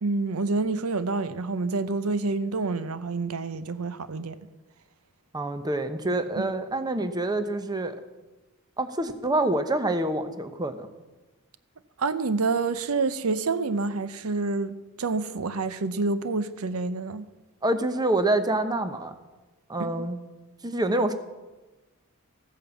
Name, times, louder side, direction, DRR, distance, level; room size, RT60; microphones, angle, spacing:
voice 1, 0.0-4.4 6.0-6.5 12.0-17.3 19.8-20.1, right 3 dB, 80° right, 0.7 m, -28 dB
voice 2, 5.3-8.0 8.8-10.9 17.6-19.2 19.7-20.2 20.6-21.1, right 2 dB, 20° right, 0.9 m, -26 dB
15.0 x 9.2 x 7.0 m
head